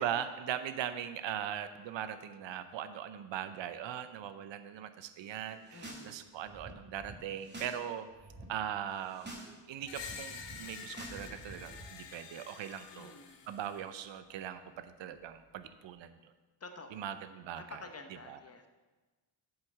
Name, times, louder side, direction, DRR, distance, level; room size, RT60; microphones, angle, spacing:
voice 1, 0.0-8.1 8.5-13.1 13.5-16.2 16.9-17.6 18.3-18.4, right 10 dB, 80° right, 11 dB, 0.7 m, -40 dB
sound 1, 5.5-6.1 6.3-7.8 8.1-8.4 8.9-9.5 9.8-11.8, right 2 dB, 25° right, 2.1 m, -49 dB
voice 2, 5.7-6.2 12.9-13.5 16.6-17.1 17.5-18.7, left 3 dB, 35° left, 6 dB, 1.0 m, -50 dB
Screech, 9.9-13.9, left 6 dB, 80° left, 1.1 m, -48 dB
8.3 x 4.8 x 7.4 m, 1.3 s
cardioid pair, 90°, 44 cm